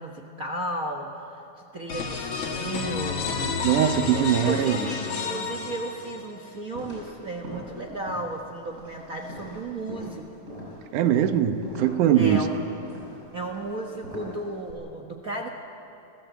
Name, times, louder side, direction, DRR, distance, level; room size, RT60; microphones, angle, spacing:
voice 1, 0.0-1.5 1.7-3.6 4.1-10.3 12.1-12.6 13.3-15.5, right 2 dB, 55° right, 2 dB, 0.9 m, -34 dB
sound 1, 1.9-6.5, left 5 dB, 55° left, 2.8 m, -30 dB
voice 2, 3.6-4.8 10.9-12.4, right 10 dB, 80° right, 9 dB, 2.5 m, -21 dB
sound 2, 6.7-14.7, left 1 dB, 25° right, 7.9 m, -42 dB
28.5 x 15.5 x 8.2 m, 2.9 s
omnidirectional pair, 3.5 m